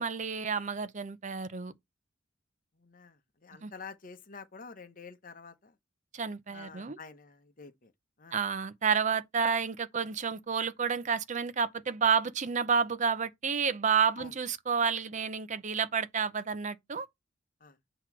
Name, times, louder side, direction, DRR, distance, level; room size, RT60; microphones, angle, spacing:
voice 1, 0.0-1.7 3.6-3.7 6.1-7.0 8.3-17.1, right 6 dB, 40° right, 0.6 m, -30 dB
voice 2, 2.8-5.7 6.5-7.9 8.2-8.4 14.2-14.3 17.6-17.8, left 5 dB, 45° left, 0.9 m, -48 dB
8.0 x 3.0 x 5.8 m
head